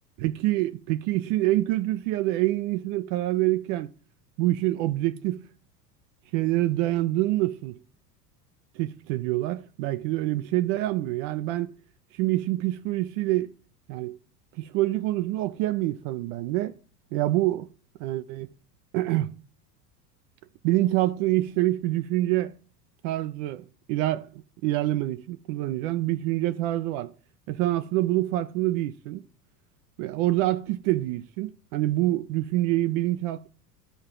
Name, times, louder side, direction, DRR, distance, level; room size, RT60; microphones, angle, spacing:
voice 1, 0.2-3.9 4.4-5.5 6.3-7.8 8.8-11.7 12.1-13.5 13.9-14.2 14.6-16.7 17.1-17.7 18.0-18.5 18.9-19.3 20.6-22.6 23.0-27.1 27.5-29.2 30.0-33.5, right 16 dB, 50° right, 0.5 m, -26 dB
12.5 x 4.3 x 3.7 m
hypercardioid pair, 85°, 49 cm